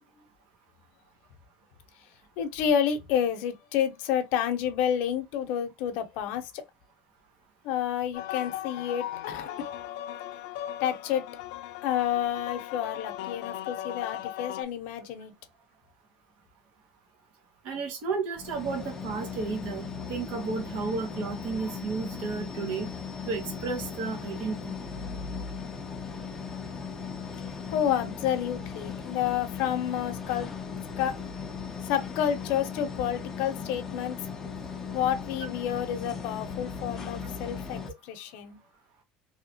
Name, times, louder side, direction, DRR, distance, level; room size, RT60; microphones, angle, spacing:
voice 1, 2.4-6.6 7.6-9.7 10.8-11.2 11.8-15.3 27.7-30.5 31.0-31.1 31.9-34.2 34.9-38.6, left 9 dB, 60° left, 0.8 m, -29 dB
sound 1, 8.1-14.6, left 12 dB, 85° left, 0.5 m, -38 dB
voice 2, 17.6-22.9 23.3-24.8, right 4 dB, 55° right, 1.1 m, -33 dB
sound 2, 18.4-37.9, left 5 dB, 15° left, 0.5 m, -38 dB
3.0 x 2.8 x 2.8 m
cardioid pair, 170°, 3 cm